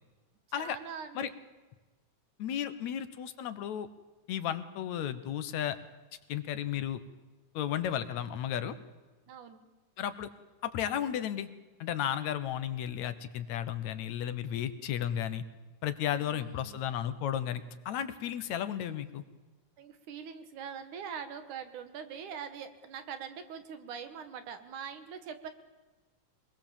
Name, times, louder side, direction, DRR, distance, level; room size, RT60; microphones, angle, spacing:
voice 1, 0.6-1.3 2.7-2.8 9.3-9.6 16.1-16.8 19.8-25.5, right 7 dB, 85° right, 9 dB, 3.0 m, -43 dB
voice 2, 2.4-3.9 4.3-5.8 6.3-7.0 7.5-8.8 10.0-10.3 10.6-11.5 11.8-15.4 15.8-19.2, left 10 dB, 70° left, 11 dB, 2.3 m, -34 dB
24.5 x 21.0 x 7.3 m, 1.2 s
omnidirectional pair, 3.4 m